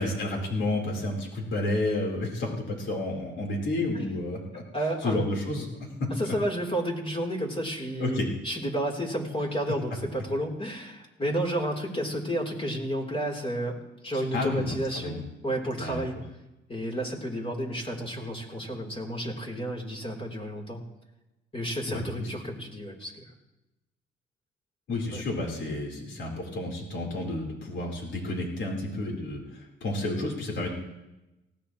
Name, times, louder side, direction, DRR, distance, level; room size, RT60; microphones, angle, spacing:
voice 1, 0.0-4.6 5.0-6.1 8.0-8.3 14.1-15.2 15.8-16.0 21.9-22.3 24.9-30.7, left 2 dB, 70° left, 0 dB, 4.3 m, -31 dB
voice 2, 4.7-5.2 6.2-13.8 14.0-16.2 16.7-20.8 21.5-23.3 25.1-25.2, right 1 dB, 30° left, 0 dB, 3.9 m, -31 dB
19.5 x 17.5 x 3.2 m, 0.99 s
cardioid pair, 90°, 20 cm